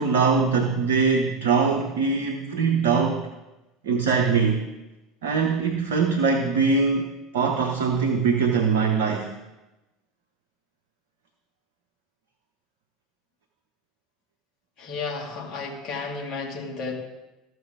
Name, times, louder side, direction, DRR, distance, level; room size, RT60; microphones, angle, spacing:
voice 1, 0.0-3.3 3.8-4.7 5.2-9.3, right 5 dB, 65° right, 2 dB, 0.8 m, -22 dB
voice 2, 14.8-16.9, left 4 dB, 45° left, -1 dB, 2.2 m, -32 dB
14.0 x 5.9 x 3.5 m, 1.0 s
figure-of-eight pair, 65°, 0 cm